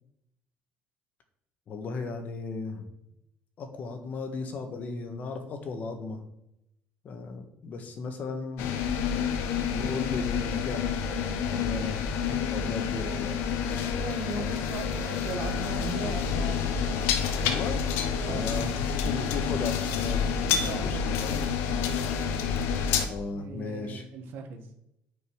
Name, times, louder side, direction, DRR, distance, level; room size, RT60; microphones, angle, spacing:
voice 1, 1.7-2.8 3.6-6.2 7.0-8.6 9.7-11.1 11.4-13.3 17.4-17.9 18.2-21.4 23.1-24.0, left 4 dB, 45° left, 6 dB, 1.6 m, -36 dB
sound 1, 8.6-23.1, left 7 dB, 85° left, 1.1 m, -28 dB
voice 2, 13.7-16.9 18.2-18.9 20.5-21.5 23.3-24.6, right 5 dB, 65° right, 5 dB, 1.7 m, -39 dB
9.3 x 5.4 x 6.4 m, 0.81 s
cardioid pair, 145°, 4 cm